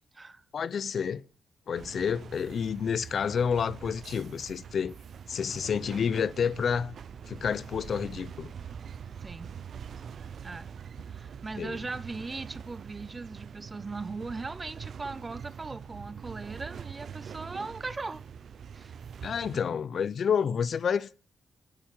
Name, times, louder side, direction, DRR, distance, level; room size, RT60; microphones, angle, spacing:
voice 1, 0.5-1.2 1.7-5.0 5.3-6.9 7.3-8.5 11.6-11.8 19.2-21.1, left 7 dB, 60° left, 0.6 m, -29 dB
sound 1, 1.7-19.6, right 7 dB, 65° right, 0.7 m, -44 dB
voice 2, 9.2-9.5 10.4-10.7 11.1-18.2 18.7-18.9, right 3 dB, 25° right, 0.7 m, -39 dB
12.0 x 8.9 x 9.3 m
cardioid pair, 90°, 0 cm